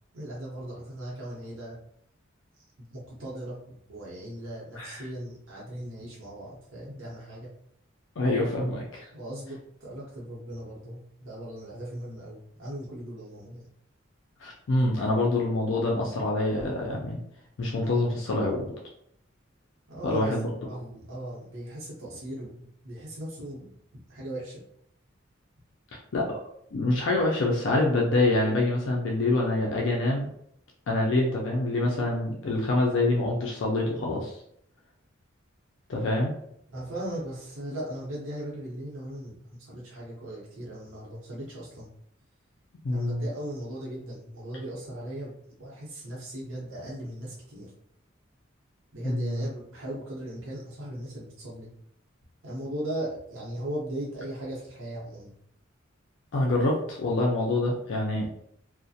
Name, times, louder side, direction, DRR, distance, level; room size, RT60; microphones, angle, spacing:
voice 1, 0.1-1.8 2.8-3.6 3.9-7.5 9.1-13.7 19.9-20.3 20.6-23.7 24.1-24.6 36.7-41.9 42.9-45.3 45.6-47.7 48.9-51.7 52.4-55.3, right 1 dB, 80° right, -6 dB, 0.8 m, -38 dB
voice 2, 8.2-9.1 14.4-17.2 17.6-18.6 20.0-20.5 26.1-26.4 26.7-30.3 30.9-34.4 35.9-36.3 42.8-43.2 49.0-49.5 56.3-58.3, left 2 dB, 65° left, -1 dB, 0.4 m, -26 dB
2.4 x 2.1 x 2.6 m, 0.71 s
head